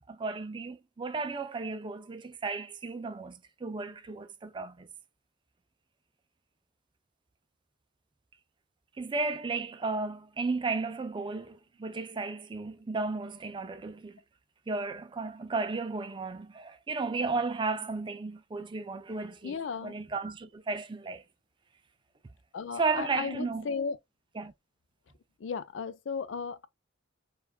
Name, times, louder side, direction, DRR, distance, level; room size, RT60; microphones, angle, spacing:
voice 1, 0.1-4.9 9.0-14.2 14.7-19.6 19.8-21.2 22.7-23.7 24.3-24.5, right 3 dB, 25° right, 0.4 m, -34 dB
voice 2, 19.4-19.9 22.5-24.0 25.4-26.7, left 5 dB, 80° left, 0.4 m, -35 dB
4.7 x 2.4 x 2.4 m
head